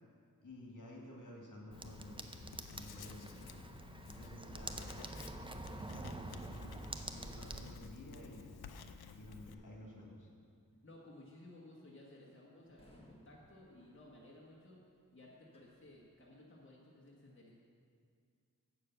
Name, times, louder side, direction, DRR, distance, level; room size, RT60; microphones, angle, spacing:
voice 1, 0.4-2.3 2.7-3.5 4.0-5.1 5.8-6.5 6.8-8.5 9.1-10.3, left 1 dB, 55° left, -2 dB, 1.9 m, -52 dB
Writing, 1.7-9.5, left 6 dB, 90° left, 0.5 m, -54 dB
sound 1, 1.7-7.7, right 2 dB, 15° right, 0.5 m, -47 dB
voice 2, 10.8-14.8 15.1-17.5, left 1 dB, 30° left, -4 dB, 1.3 m, -57 dB
sound 2, 12.7-16.5, left 1 dB, 15° left, 1.4 m, -66 dB
8.0 x 6.7 x 6.7 m, 2.2 s
wide cardioid pair, 60°, 36 cm